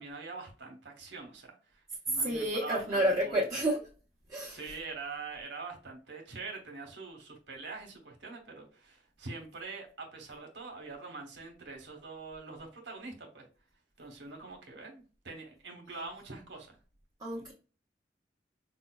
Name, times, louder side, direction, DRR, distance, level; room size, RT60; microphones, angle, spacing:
voice 1, 0.0-3.5 4.5-13.5 14.0-16.8 17.4-17.5, right 3 dB, 75° right, 2 dB, 0.9 m, -44 dB
voice 2, 2.1-3.8 4.3-4.6 17.2-17.5, right 1 dB, 20° right, -5 dB, 0.8 m, -30 dB
4.9 x 2.2 x 2.2 m, 0.37 s
head